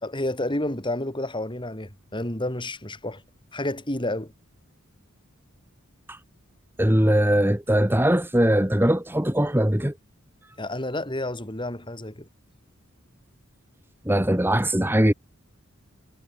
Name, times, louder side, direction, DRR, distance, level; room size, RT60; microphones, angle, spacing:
voice 1, 0.0-3.2 3.5-4.3 10.6-12.3, left 1 dB, 25° left, 4.1 m, -30 dB
voice 2, 6.8-9.9 14.1-15.1, right 1 dB, 10° right, 1.8 m, -21 dB
head